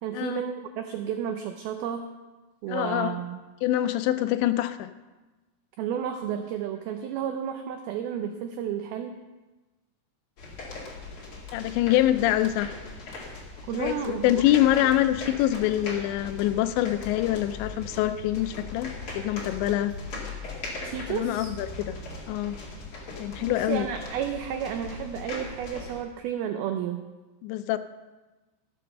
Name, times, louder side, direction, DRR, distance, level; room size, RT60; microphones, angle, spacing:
voice 1, 0.0-2.1 2.6-3.4 5.8-9.2 13.7-14.4 20.8-21.5 23.4-27.0, right 9 dB, 85° right, 6 dB, 2.1 m, -32 dB
voice 2, 2.7-3.2 3.6-4.9 11.5-12.7 13.7-19.9 21.1-22.0 22.3-22.6 23.2-23.9 27.4-27.8, left 13 dB, 85° left, 11 dB, 2.7 m, -25 dB
sound 1, 10.4-26.0, left 3 dB, 40° left, 2.2 m, -39 dB
14.5 x 7.7 x 6.4 m, 1.2 s
omnidirectional pair, 5.2 m